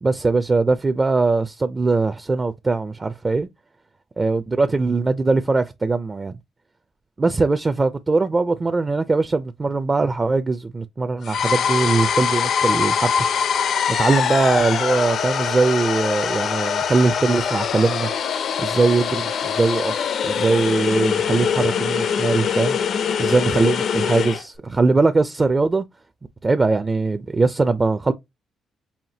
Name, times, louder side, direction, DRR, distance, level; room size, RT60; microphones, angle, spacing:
voice 1, 0.0-3.5 4.2-6.4 7.2-13.3 14.0-18.1 18.6-20.0 20.2-22.8 23.2-25.8 26.4-28.1, right 3 dB, 25° right, 0.4 m, -21 dB
sound 1, 11.2-24.4, left 7 dB, 65° left, 0.5 m, -23 dB
5.7 x 2.6 x 2.8 m
cardioid pair, 90°, 0 cm